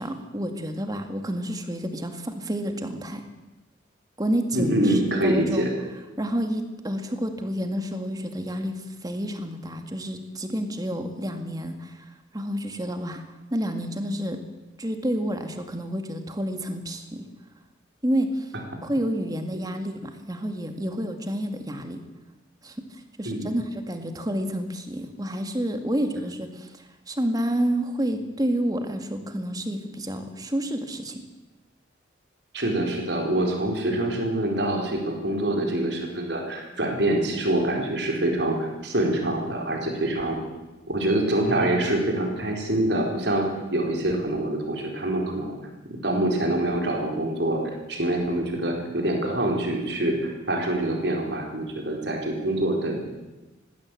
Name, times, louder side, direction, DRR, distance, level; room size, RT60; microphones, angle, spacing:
voice 1, 0.0-3.2 4.2-5.7 6.2-13.2 13.5-14.4 14.8-17.2 18.0-18.5 18.8-22.0 22.6-31.2, equal, 20° right, 6 dB, 2.0 m, -29 dB
voice 2, 4.5-5.7 23.2-23.5 32.5-40.4 40.9-45.5 46.0-53.0, right 1 dB, 65° right, 1 dB, 4.5 m, -25 dB
19.5 x 16.0 x 8.5 m, 1.1 s
head